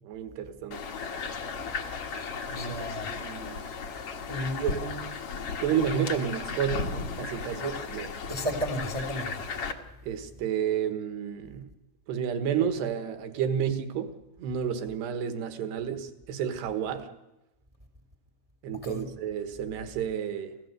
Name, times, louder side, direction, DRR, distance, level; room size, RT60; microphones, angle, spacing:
voice 1, 0.0-0.9 2.5-3.7 4.6-4.8 5.6-8.1 10.0-11.7 12.1-17.1 18.6-20.5, right 8 dB, 75° right, 3.4 m, -31 dB
sound 1, 0.7-9.7, left 5 dB, 65° left, 1.5 m, -35 dB
voice 2, 2.2-3.1 4.3-5.0 7.6-7.8 8.3-9.5 18.8-19.1, equal, 25° right, 0.7 m, -34 dB
27.5 x 16.0 x 6.7 m
omnidirectional pair, 4.9 m